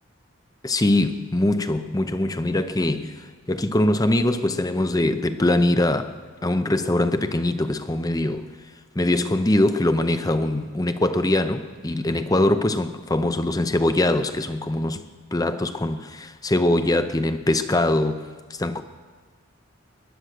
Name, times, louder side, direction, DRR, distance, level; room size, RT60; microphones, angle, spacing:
voice 1, 0.6-8.5 9.0-15.0 15.3-18.2 18.5-18.8, left 1 dB, 20° left, 0.6 m, -22 dB
19.0 x 11.0 x 6.6 m
head